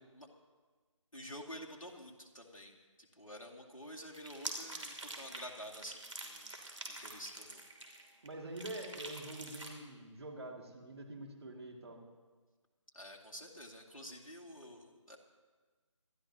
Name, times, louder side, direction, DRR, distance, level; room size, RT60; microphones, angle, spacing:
voice 1, 1.1-2.7 3.0-6.5 6.9-7.6 12.9-15.2, equal, 85° left, -1 dB, 2.3 m, -49 dB
sound 1, 4.1-8.3 8.6-9.7, right 2 dB, 65° right, 2.9 m, -46 dB
voice 2, 8.2-12.0, right 1 dB, 50° right, 2 dB, 2.3 m, -46 dB
26.0 x 12.5 x 2.9 m, 1.4 s
figure-of-eight pair, 155°, 17 cm